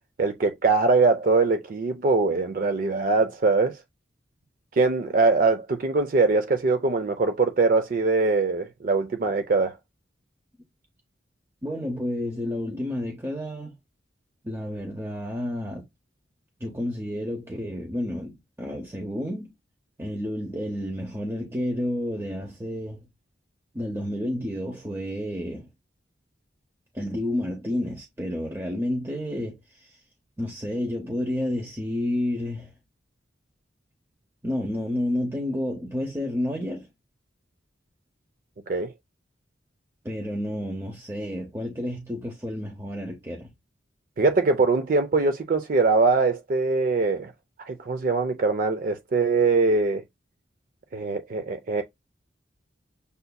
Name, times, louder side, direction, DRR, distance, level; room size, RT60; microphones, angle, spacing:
voice 1, 0.2-3.8 4.8-9.8 38.7-38.9 44.2-47.3 47.7-50.0 50.9-51.8, right 3 dB, 45° right, 0.4 m, -22 dB
voice 2, 11.6-13.7 14.4-15.8 16.6-19.5 20.0-23.1 23.7-25.7 26.9-30.0 30.4-32.7 34.4-36.9 40.0-43.5, left 1 dB, 15° right, 0.7 m, -30 dB
6.7 x 2.6 x 2.2 m
head